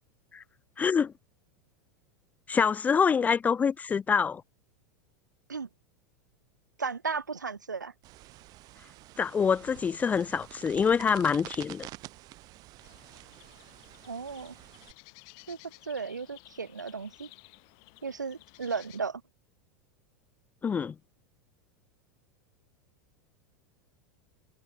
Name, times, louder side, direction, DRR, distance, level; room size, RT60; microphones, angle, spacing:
voice 1, 0.8-1.1 2.5-4.4 9.2-11.9 20.6-21.0, left 6 dB, 15° left, 0.3 m, -26 dB
voice 2, 6.8-7.9 14.1-14.5 15.5-15.6 15.8-17.3 18.0-19.2, right 5 dB, 85° right, 0.7 m, -35 dB
sound 1, 8.0-14.9, right 18 dB, 40° right, 4.9 m, -48 dB
sound 2, 12.8-19.0, left 35 dB, 50° left, 3.4 m, -55 dB
figure-of-eight pair, 85°, 10 cm